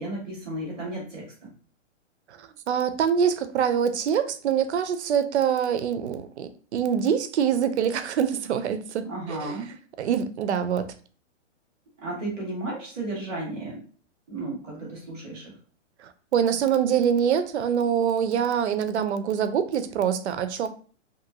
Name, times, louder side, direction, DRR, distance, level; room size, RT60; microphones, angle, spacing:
voice 1, 0.0-1.5 9.0-9.7 12.0-13.8 14.3-15.5, right 2 dB, ahead, 0.4 m, -34 dB
voice 2, 2.3-9.6 10.0-10.9 16.0-20.7, right 8 dB, 65° right, 0.5 m, -25 dB
2.6 x 2.5 x 2.7 m
hypercardioid pair, 175°, 37 cm